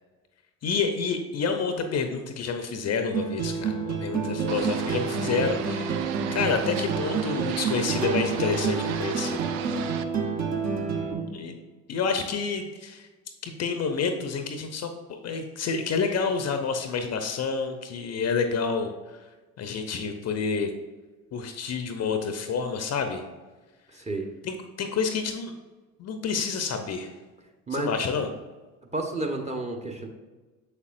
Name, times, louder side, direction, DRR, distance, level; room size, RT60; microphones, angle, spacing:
voice 1, 0.6-6.0 6.3-9.5 11.3-11.6 11.9-13.1 13.4-19.2 19.6-20.7 21.3-23.2 24.4-25.5 26.0-27.1 27.7-28.3, left 5 dB, 40° left, 7 dB, 0.8 m, -29 dB
sound 1, 3.1-11.1, right 5 dB, 40° right, 1.4 m, -28 dB
sound 2, 4.5-10.0, right 9 dB, 55° right, 0.6 m, -36 dB
voice 2, 10.9-11.3 23.9-24.3 27.7-27.9 28.9-30.1, right 2 dB, 15° right, 2 dB, 1.1 m, -31 dB
6.8 x 6.6 x 2.5 m, 1.3 s
figure-of-eight pair, 60°, 41 cm